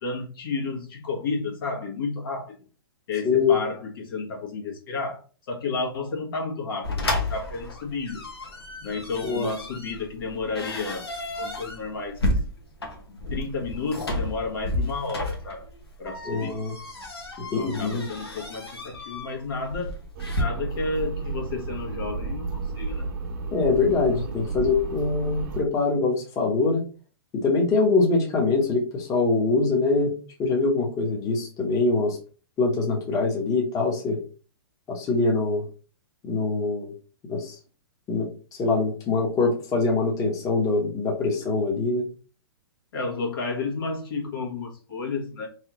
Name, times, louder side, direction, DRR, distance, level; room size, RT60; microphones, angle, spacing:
voice 1, 0.0-2.6 3.1-8.3 8.8-12.4 13.1-15.7 16.0-16.6 17.5-20.0 20.4-23.1 42.9-45.5, left 3 dB, 65° left, 1.5 m, -32 dB
sound 1, 6.8-20.4, left 1 dB, 90° left, 1.4 m, -32 dB
voice 2, 16.2-16.7 17.5-18.0 23.5-26.8 27.4-30.1 30.4-32.2 32.6-34.2 34.9-35.6 36.2-36.9 37.3-37.6 38.1-38.3 38.6-42.0, left 3 dB, 25° left, 1.1 m, -23 dB
sound 2, 20.2-25.6, right 4 dB, 50° right, 0.8 m, -32 dB
3.8 x 3.3 x 3.0 m
hypercardioid pair, 130°, 13 cm